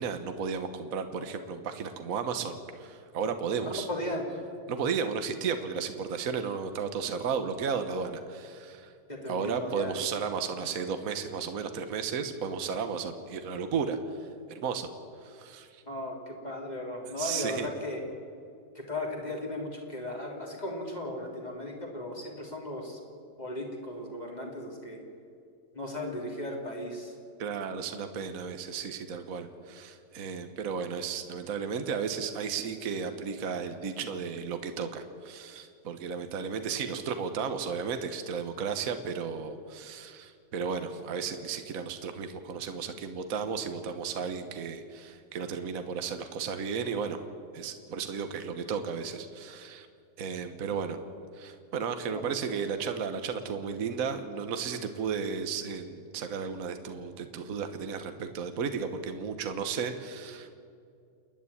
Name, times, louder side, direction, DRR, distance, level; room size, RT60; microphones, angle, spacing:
voice 1, 0.0-3.9 4.7-8.9 9.3-14.9 15.2-15.8 17.2-17.7 27.4-47.2 47.5-49.9 50.2-51.0 51.3-60.5, right 6 dB, 55° right, 8 dB, 1.6 m, -34 dB
voice 2, 3.7-4.2 9.1-9.9 15.9-18.0 18.8-23.0 23.4-25.0 25.7-27.1 52.1-52.2, left 1 dB, 25° left, 0 dB, 3.5 m, -36 dB
29.0 x 10.5 x 9.9 m, 2.4 s
omnidirectional pair, 1.8 m